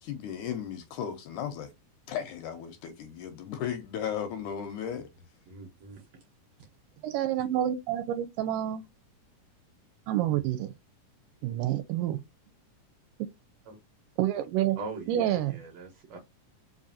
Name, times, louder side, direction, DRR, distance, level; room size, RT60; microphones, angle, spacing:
voice 1, 0.0-1.7 2.1-5.1, left 8 dB, 80° left, 1.9 m, -35 dB
voice 2, 5.5-6.2 7.0-7.1 13.7-13.8 14.8-16.2, right 4 dB, 65° right, 1.7 m, -42 dB
voice 3, 7.0-8.8 10.1-10.7 11.4-12.2 13.2-13.3 14.2-14.8 15.1-15.6, right 12 dB, 85° right, 2.1 m, -28 dB
4.9 x 2.6 x 2.6 m
omnidirectional pair, 3.8 m